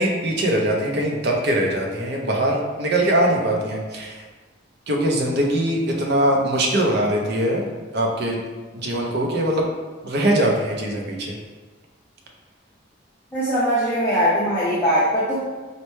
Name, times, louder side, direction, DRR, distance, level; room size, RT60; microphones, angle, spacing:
voice 1, 0.0-4.2 4.9-7.6 7.9-8.4 8.7-9.7 10.0-11.4, right 1 dB, 55° right, 0 dB, 0.6 m, -22 dB
voice 2, 13.3-15.4, equal, 10° left, -10 dB, 0.5 m, -20 dB
4.2 x 2.1 x 3.1 m, 1.3 s
head